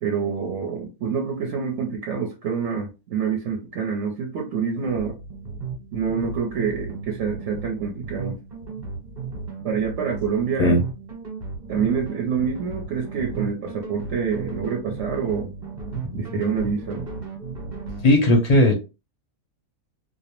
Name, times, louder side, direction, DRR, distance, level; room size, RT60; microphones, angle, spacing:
voice 1, 0.0-5.2 5.9-8.4 9.6-10.8 11.7-15.5 16.1-17.1, right 6 dB, 65° right, 1 dB, 0.8 m, -26 dB
sound 1, 4.8-18.1, right 4 dB, 35° right, 1.0 m, -35 dB
voice 2, 18.0-18.7, left 1 dB, 45° left, 1 dB, 0.5 m, -16 dB
2.5 x 2.0 x 3.0 m, 0.29 s
omnidirectional pair, 1.5 m